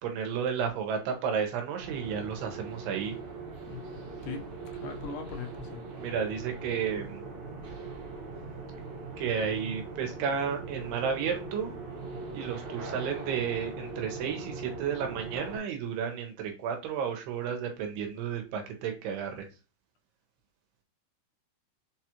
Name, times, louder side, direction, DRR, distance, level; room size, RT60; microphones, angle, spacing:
voice 1, 0.0-3.2 6.0-7.2 9.2-11.7 12.3-19.5, right 7 dB, 80° right, 2.9 m, -32 dB
sound 1, 1.8-15.6, right 3 dB, 65° right, 1.8 m, -41 dB
voice 2, 4.8-5.8, left 5 dB, 80° left, 2.9 m, -39 dB
6.8 x 2.4 x 2.9 m
omnidirectional pair, 4.6 m